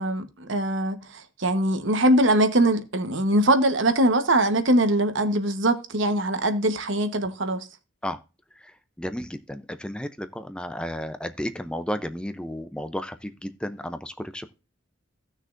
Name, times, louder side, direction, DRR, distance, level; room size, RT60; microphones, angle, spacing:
voice 1, 0.0-7.7, right 1 dB, 70° right, 1.1 m, -22 dB
voice 2, 9.0-14.5, equal, 5° left, 0.5 m, -33 dB
16.5 x 6.3 x 2.5 m
head